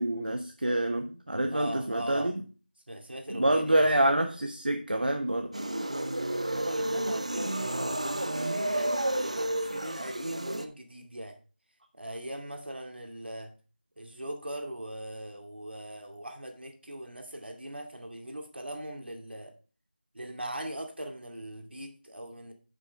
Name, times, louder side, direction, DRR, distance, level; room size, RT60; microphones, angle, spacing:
voice 1, 0.0-2.3 3.3-5.5, right 1 dB, 60° right, 5 dB, 1.0 m, -27 dB
voice 2, 1.5-2.3 2.9-3.9 6.5-11.4 11.9-13.5 14.0-19.5 20.1-22.5, right 1 dB, 75° right, 3 dB, 2.4 m, -40 dB
sound 1, 5.5-10.7, right 1 dB, 40° right, 0.6 m, -31 dB
9.3 x 6.5 x 3.6 m, 0.36 s
figure-of-eight pair, 180°, 6 cm